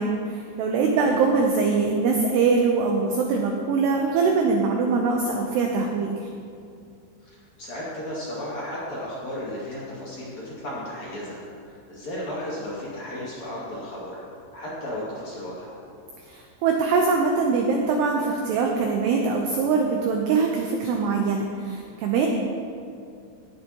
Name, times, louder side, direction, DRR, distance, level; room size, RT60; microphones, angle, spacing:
voice 1, 0.0-6.1 16.3-22.3, right 4 dB, 85° right, 1 dB, 2.4 m, -23 dB
voice 2, 7.2-11.4 11.7-14.2 14.5-15.7, left 1 dB, 45° left, -8 dB, 2.8 m, -34 dB
18.0 x 10.5 x 3.0 m, 2.4 s
omnidirectional pair, 5.9 m